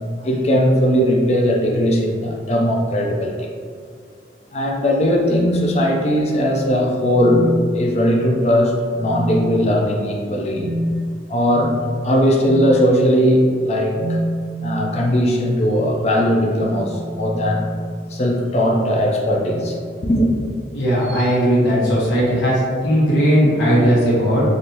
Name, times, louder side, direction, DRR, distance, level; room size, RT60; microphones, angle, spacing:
voice 1, 0.2-3.5 4.5-7.5 7.7-8.7 9.0-10.7 11.3-14.2 14.6-17.6 18.1-19.8 20.0-20.3, equal, 35° left, 0 dB, 0.4 m, -18 dB
sound 1, 7.0-8.3 8.9-9.7 10.5-11.0 12.4-12.8 13.9-14.9 16.4-18.3 19.4-19.8 21.0-21.3, right 1 dB, 65° right, 0.3 m, -27 dB
voice 2, 20.7-24.4, equal, 85° left, -8 dB, 1.2 m, -17 dB
3.3 x 2.6 x 2.8 m, 2.1 s
head